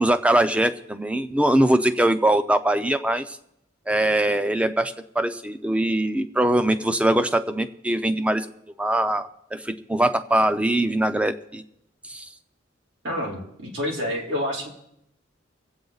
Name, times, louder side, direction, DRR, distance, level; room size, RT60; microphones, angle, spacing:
voice 1, 0.0-3.4 3.9-8.5 8.8-11.6 12.1-12.3, right 1 dB, 5° right, 10 dB, 0.6 m, -22 dB
voice 2, 13.0-14.7, left 1 dB, 85° right, -2 dB, 3.2 m, -28 dB
24.5 x 8.4 x 4.0 m, 0.79 s
head